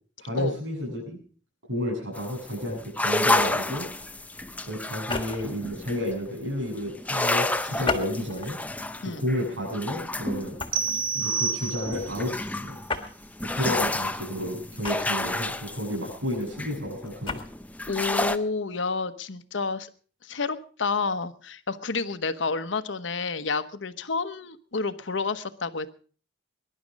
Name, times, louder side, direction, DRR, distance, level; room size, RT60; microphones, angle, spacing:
voice 1, 0.2-1.2 1.6-3.8 4.6-8.6 9.0-10.5 11.1-12.8 13.5-17.4, left 1 dB, 85° right, -2 dB, 7.8 m, -31 dB
sound 1, 2.1-6.4 6.8-18.4, left 2 dB, 10° left, 0.6 m, -30 dB
sound 2, 5.0-5.6 7.8-8.6 9.2-9.4 10.6-10.9 12.9-13.1 14.8-15.4 17.0-17.5, left 3 dB, 25° left, 1.5 m, -32 dB
sound 3, 10.7-12.3, right 5 dB, 45° right, 1.4 m, -28 dB
voice 2, 17.9-19.9 20.2-25.9, left 4 dB, 80° left, 12 dB, 1.0 m, -30 dB
21.5 x 11.0 x 5.2 m, 0.42 s
head